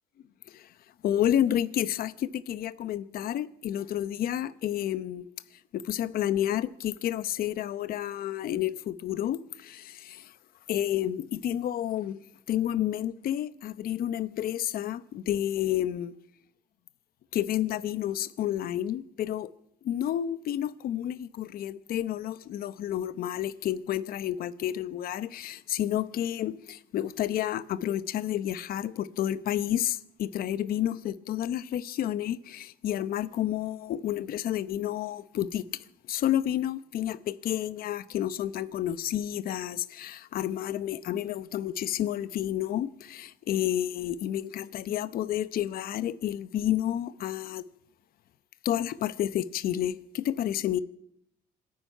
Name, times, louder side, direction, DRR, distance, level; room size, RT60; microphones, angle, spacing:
voice 1, 1.0-5.3 5.7-10.3 10.7-12.2 12.5-16.1 17.3-19.5 19.8-47.6 48.6-50.8, left 11 dB, 60° left, 0.8 m, -30 dB
27.0 x 9.6 x 5.6 m
cardioid pair, 110°, 17 cm